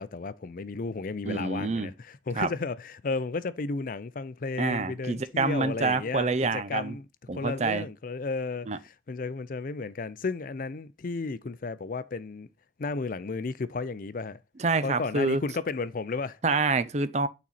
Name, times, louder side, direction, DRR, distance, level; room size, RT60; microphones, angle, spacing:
voice 1, 0.0-7.1 7.3-12.5 12.8-14.4 14.8-16.4, left 4 dB, 50° left, 0.5 m, -33 dB
voice 2, 1.3-1.9 2.4-2.5 4.6-7.0 7.3-7.9 8.7-8.8 14.6-15.4 16.4-17.3, right 3 dB, 40° right, 0.6 m, -27 dB
8.9 x 4.2 x 4.1 m
head